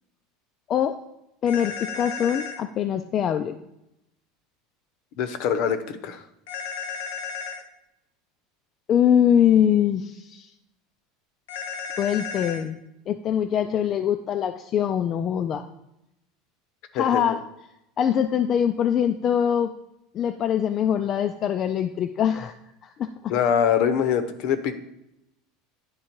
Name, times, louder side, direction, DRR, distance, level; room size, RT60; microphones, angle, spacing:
voice 1, 1.4-3.6 8.9-10.5 12.0-12.8 13.1-15.7 16.9-17.4 18.0-19.7 20.1-22.5 22.8-23.3, left 9 dB, 35° left, 8 dB, 0.3 m, -23 dB
sound 1, 1.5-2.6 6.5-7.6 11.5-12.6, left 6 dB, 80° left, 1.1 m, -33 dB
voice 2, 5.2-6.2 16.9-17.4 23.3-24.7, left 8 dB, 55° left, 11 dB, 0.7 m, -24 dB
10.0 x 3.6 x 4.5 m, 0.86 s
supercardioid pair, 150°, 0 cm